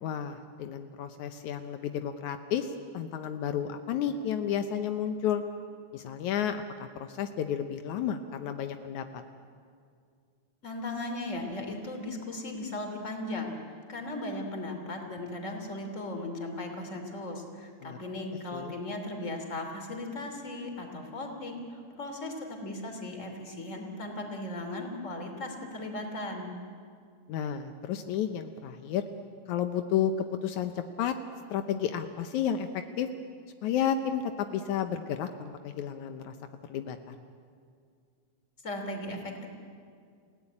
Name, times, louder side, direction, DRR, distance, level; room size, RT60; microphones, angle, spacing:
voice 1, 0.0-5.4 5.9-9.2 17.8-18.0 18.5-18.7 27.3-29.1 29.5-30.1 30.4-31.1 31.5-32.7 33.0-33.1 33.6-36.4 36.7-37.2, left 9 dB, 80° left, 8 dB, 2.2 m, -32 dB
voice 2, 10.6-13.5 13.9-26.6 38.6-39.5, left 2 dB, 25° left, 4 dB, 3.1 m, -37 dB
29.0 x 17.0 x 9.9 m, 2.2 s
omnidirectional pair, 3.4 m